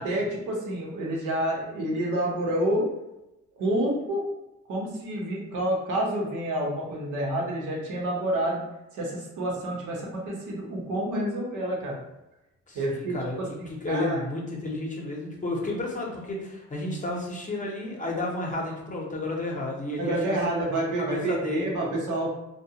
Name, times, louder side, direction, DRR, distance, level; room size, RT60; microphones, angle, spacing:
voice 1, 0.0-2.9 3.5-4.2 4.7-8.6 8.9-12.0 12.7-14.2 20.0-22.3, right 1 dB, 80° right, -3 dB, 1.0 m, -28 dB
voice 2, 12.7-13.4 13.7-20.4 21.0-21.7, left 2 dB, 25° left, -1 dB, 0.7 m, -32 dB
2.3 x 2.2 x 2.8 m, 0.93 s
cardioid pair, 90°, 30 cm